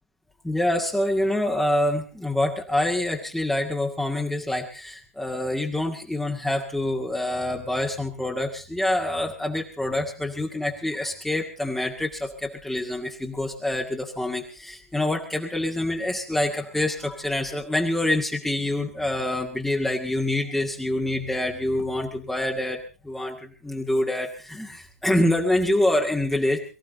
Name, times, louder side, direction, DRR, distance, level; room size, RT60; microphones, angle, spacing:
voice 1, 0.4-22.8 23.0-26.6, left 1 dB, 5° left, 0 dB, 2.0 m, -26 dB
23.5 x 14.5 x 3.9 m, 0.35 s
figure-of-eight pair, 110°, 8 cm